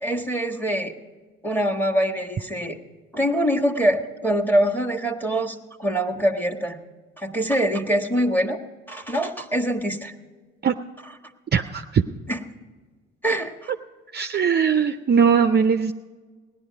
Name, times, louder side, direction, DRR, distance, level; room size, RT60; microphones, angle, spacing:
voice 1, 0.0-0.9 1.4-2.8 3.1-6.8 7.2-8.6 8.9-10.1 12.3-12.4 13.2-13.7, equal, 5° left, 3 dB, 1.5 m, -24 dB
voice 2, 11.5-12.0 14.1-15.9, right 6 dB, 35° right, 7 dB, 0.5 m, -20 dB
17.5 x 10.5 x 5.2 m, 1.4 s
hypercardioid pair, 50°, 31 cm